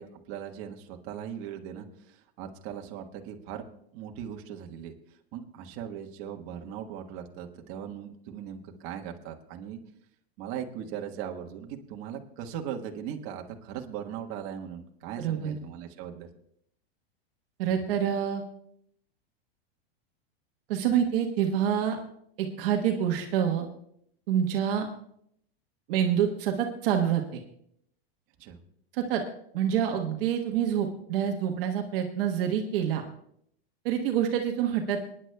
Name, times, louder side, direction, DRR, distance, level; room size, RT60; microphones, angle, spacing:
voice 1, 0.0-3.6 3.9-4.9 5.3-9.8 10.4-16.3 28.4-28.6, right 9 dB, 50° right, 3 dB, 1.4 m, -39 dB
voice 2, 15.2-15.5 17.6-18.4 20.7-22.0 22.4-23.7 24.3-24.9 25.9-27.4 28.9-29.2 29.5-33.0 33.8-35.1, right 9 dB, 65° right, 4 dB, 1.3 m, -27 dB
26.5 x 10.0 x 2.3 m, 0.70 s
supercardioid pair, 125°, 31 cm